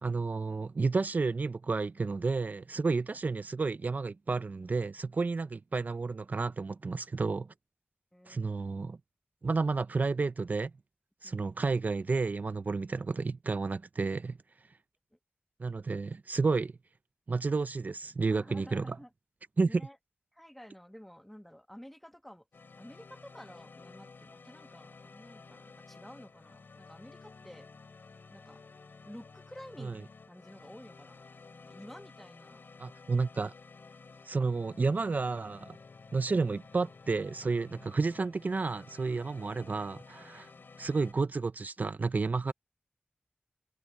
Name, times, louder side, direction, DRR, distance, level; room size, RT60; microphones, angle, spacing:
voice 1, 0.0-7.5 8.3-9.0 9.4-10.7 11.2-14.4 15.6-16.7 17.3-19.0 19.6-19.8 29.8-30.0 32.8-33.5 34.2-35.8 36.1-40.5 40.8-42.5, right 4 dB, 50° right, 0.4 m, -31 dB
voice 2, 8.1-8.4 11.2-11.4 18.3-19.1 19.7-20.0 20.3-22.4 22.8-27.7 28.3-28.6 29.0-30.0 30.3-32.6 40.4-41.0, equal, 5° left, 1.3 m, -51 dB
sound 1, 22.5-41.1, left 4 dB, 75° left, 2.6 m, -53 dB
wide cardioid pair, 90°, 4 cm